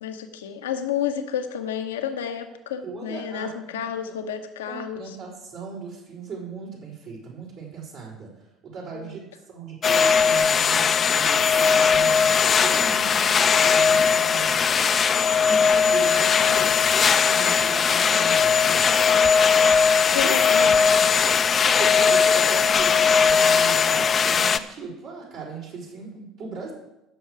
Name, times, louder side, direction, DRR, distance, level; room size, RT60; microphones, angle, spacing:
voice 1, 0.0-5.2 9.0-9.1 20.1-20.9, left 9 dB, 75° left, 7 dB, 1.0 m, -30 dB
voice 2, 2.8-4.1 4.7-15.0 15.5-19.0 20.0-20.4 21.6-26.7, right 4 dB, 60° right, -6 dB, 4.1 m, -38 dB
sound 1, 9.8-24.6, left 6 dB, 35° left, 0.6 m, -19 dB
16.0 x 6.4 x 4.8 m, 0.92 s
figure-of-eight pair, 60°, 0 cm